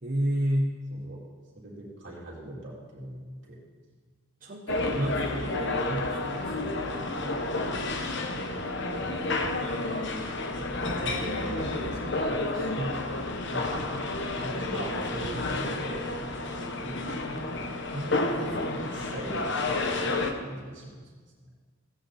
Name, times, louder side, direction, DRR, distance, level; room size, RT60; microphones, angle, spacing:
voice 1, 0.0-0.8 4.4-7.4 12.8-13.1 17.9-18.8, equal, 40° right, -1 dB, 1.1 m, -32 dB
voice 2, 1.5-3.6 7.8-8.6 8.9-9.8 10.6-12.7 13.5-13.9 14.4-17.6 18.4-21.1, right 1 dB, 55° right, -5 dB, 3.4 m, -41 dB
sound 1, 4.7-20.3, left 2 dB, 55° left, 1.1 m, -30 dB
16.5 x 9.5 x 4.3 m, 1.5 s
head